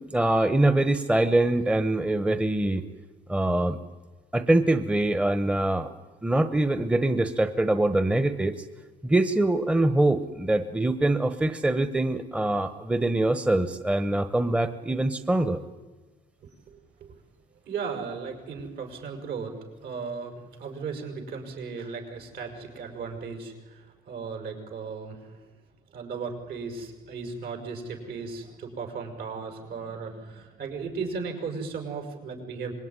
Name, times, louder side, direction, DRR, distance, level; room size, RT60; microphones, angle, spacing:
voice 1, 0.0-2.8 3.3-3.8 4.3-5.9 6.2-8.6 9.0-15.6, right 2 dB, 5° right, 10 dB, 1.1 m, -24 dB
voice 2, 16.4-17.1 17.7-19.5 19.8-25.4 25.9-32.7, right 5 dB, 65° right, 4 dB, 6.1 m, -36 dB
25.5 x 21.5 x 9.8 m, 1.3 s
cardioid pair, 110°, 17 cm